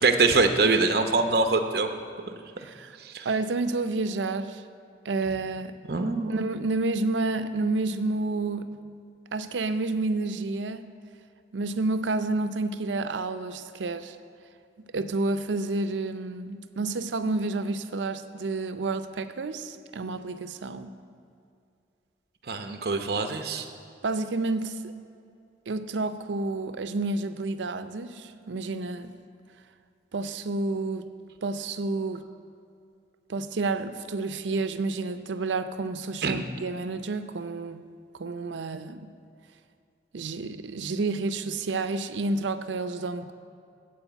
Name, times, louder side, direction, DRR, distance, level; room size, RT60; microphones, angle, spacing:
voice 1, 0.0-1.9 3.0-3.3 5.9-6.3 22.5-23.6 36.2-36.4, right 3 dB, 55° right, 0.8 m, -23 dB
voice 2, 2.6-3.0 3.2-4.6 5.0-5.8 6.3-8.7 9.3-10.9 11.5-14.2 14.9-20.9 24.0-24.9 25.7-29.1 30.1-31.1 31.4-32.3 33.3-37.8 38.2-39.1 40.1-43.3, right 3 dB, 90° right, 0.5 m, -30 dB
14.5 x 4.9 x 8.1 m
head